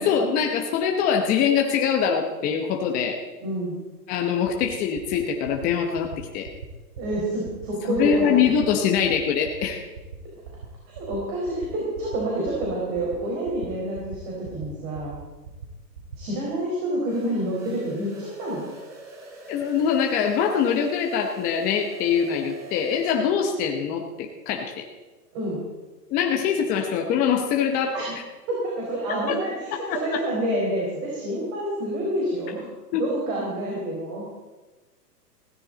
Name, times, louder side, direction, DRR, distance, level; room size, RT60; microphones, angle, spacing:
voice 1, 0.0-3.2 4.1-6.5 8.0-9.8 19.5-24.8 26.1-27.9 29.9-30.2 32.9-33.0, left 7 dB, 15° left, 2 dB, 0.8 m, -23 dB
voice 2, 3.4-3.8 7.0-8.5 10.9-15.2 16.2-18.7 25.3-25.6 27.9-28.1 28.5-32.7 33.0-34.2, right 1 dB, 40° right, -4 dB, 4.7 m, -28 dB
sound 1, 4.1-4.2 4.4-4.7 4.9-5.2 5.4-5.7 5.9-6.2 6.4-6.7 6.9-7.2 7.4-7.7 7.9-8.2 8.4-8.7 8.9-9.2 9.4-9.7 9.9-10.2 10.4-10.7 10.9-11.2 11.4-11.7 11.9-12.2 12.4-12.7 12.9-13.2 13.4-13.7 13.9-14.2 14.4-14.7 14.9-15.2 15.4-15.7 15.9-16.2, right 7 dB, 65° right, 3.4 m, -39 dB
sound 2, 17.0-23.3, right 3 dB, 5° right, 0.4 m, -44 dB
16.5 x 14.0 x 4.0 m, 1.2 s
hypercardioid pair, 140°, 49 cm